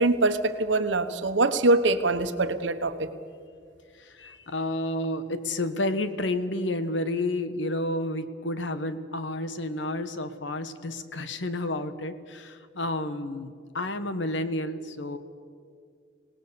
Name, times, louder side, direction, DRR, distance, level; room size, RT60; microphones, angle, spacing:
voice 1, 0.0-3.1, right 2 dB, 75° right, 9 dB, 1.2 m, -23 dB
voice 2, 4.0-15.2, left 1 dB, 75° left, 11 dB, 1.2 m, -30 dB
25.5 x 18.5 x 6.9 m, 2.3 s
head